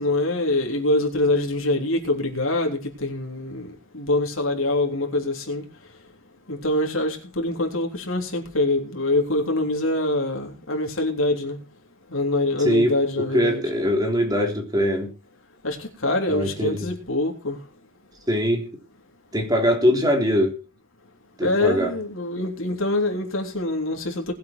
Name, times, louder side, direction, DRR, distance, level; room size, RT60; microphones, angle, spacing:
voice 1, 0.0-5.6 6.5-11.6 12.1-13.6 15.6-15.8 16.0-17.6 21.4-24.3, left 2 dB, 65° left, 3.5 m, -24 dB
voice 2, 12.6-13.0 13.3-15.1 16.3-16.9 18.3-18.7 19.3-20.5 21.4-21.9, equal, 15° right, 3.5 m, -22 dB
20.0 x 8.2 x 4.5 m
head